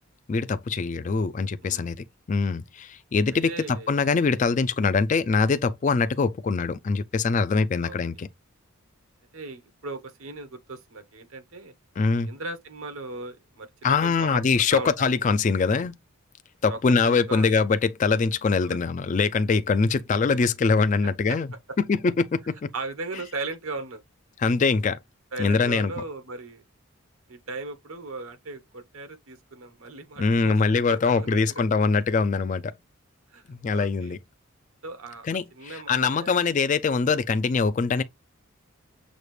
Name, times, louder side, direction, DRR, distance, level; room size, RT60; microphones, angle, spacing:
voice 1, 0.3-2.0 2.3-8.3 12.0-12.3 13.8-15.9 16.6-21.5 21.9-22.7 24.4-25.0 25.4-25.9 30.2-32.7 33.5-34.2 35.3-38.0, left 4 dB, 35° left, 0.3 m, -23 dB
voice 2, 3.5-4.0 6.0-6.1 7.8-8.0 9.3-11.7 12.2-14.4 14.7-14.9 16.7-17.5 18.6-18.8 21.3-21.4 22.7-24.0 25.3-26.6 27.3-30.6 30.9-31.6 33.3-33.4 33.7-34.2 34.8-36.4 37.0-37.1, right 3 dB, 75° right, 1.0 m, -37 dB
6.4 x 2.5 x 3.1 m
head